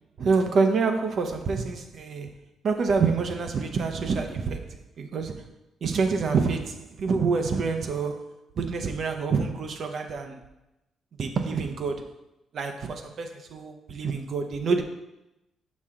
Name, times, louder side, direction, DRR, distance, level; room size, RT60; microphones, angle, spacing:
voice 1, 0.2-2.3 2.6-5.5 5.8-8.3 8.6-10.4 11.2-12.0 12.5-14.8, right 4 dB, 60° right, 0.8 m, -27 dB
6.3 x 5.5 x 3.7 m
cardioid pair, 90°, 0 cm